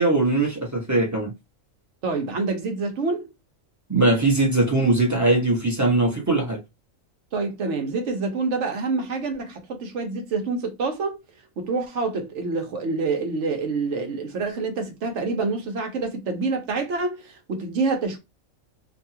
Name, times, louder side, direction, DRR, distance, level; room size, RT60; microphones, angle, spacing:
voice 1, 0.0-1.3 3.9-6.6, right 2 dB, 15° right, 0.8 m, -20 dB
voice 2, 2.0-3.3 7.3-11.2 11.6-18.2, right 3 dB, 65° right, 1.1 m, -27 dB
2.8 x 2.3 x 2.7 m
omnidirectional pair, 1.4 m